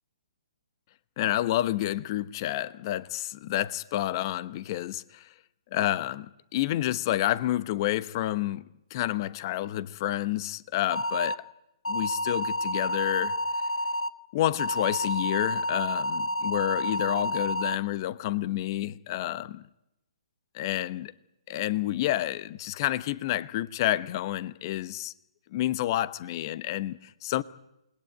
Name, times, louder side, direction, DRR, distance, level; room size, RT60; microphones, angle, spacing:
voice 1, 1.2-5.3 5.7-8.6 8.9-11.4 11.9-13.3 14.3-19.6 20.5-21.1 21.5-25.1 25.5-27.4, left 14 dB, 40° left, 1.0 m, -29 dB
sound 1, 10.9-11.4 11.8-14.1 14.6-17.8, equal, 90° left, 1.2 m, -29 dB
28.0 x 20.5 x 9.4 m
hypercardioid pair, 135°, 3 cm